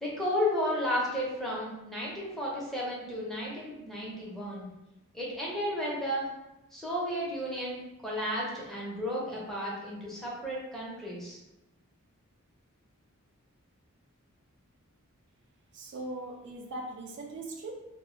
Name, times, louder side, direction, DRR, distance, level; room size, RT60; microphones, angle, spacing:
voice 1, 0.0-4.7 5.1-6.3 6.7-11.4, left 1 dB, ahead, -6 dB, 0.5 m, -33 dB
voice 2, 15.7-17.7, right 2 dB, 55° right, 1 dB, 0.3 m, -40 dB
2.1 x 2.0 x 3.7 m, 0.95 s
head